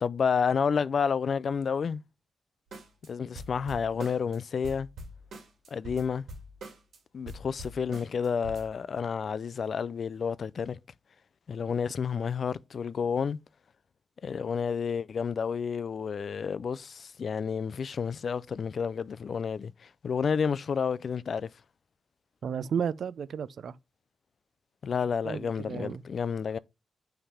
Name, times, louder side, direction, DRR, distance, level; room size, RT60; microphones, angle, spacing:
voice 1, 0.0-2.0 3.0-4.9 5.7-6.2 7.1-10.8 11.5-13.4 14.2-19.7 20.0-21.5 24.8-26.6, left 6 dB, 55° left, 0.3 m, -30 dB
sound 1, 2.7-3.1 3.4-4.4 4.6-7.0 7.3-8.7, right 1 dB, 85° right, 2.0 m, -43 dB
voice 2, 22.4-23.8 25.2-26.0, right 7 dB, 65° right, 0.4 m, -33 dB
5.7 x 3.3 x 5.4 m
wide cardioid pair, 140°, 0 cm